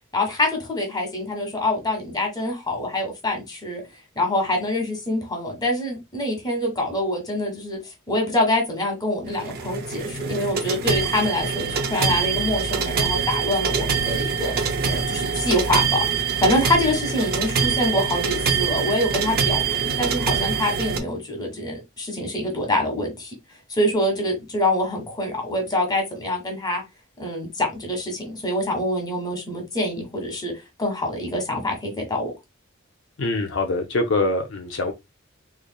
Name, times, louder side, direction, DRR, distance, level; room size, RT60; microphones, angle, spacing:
voice 1, 0.1-3.8 4.1-7.8 8.1-14.5 14.8-23.3 23.7-26.8 27.2-30.5 30.8-32.3, left 1 dB, 20° left, 1.3 m, -25 dB
sound 1, 9.2-21.0, right 5 dB, 50° right, 0.6 m, -24 dB
voice 2, 33.2-34.9, left 2 dB, 60° left, 0.5 m, -24 dB
3.7 x 3.2 x 2.2 m
head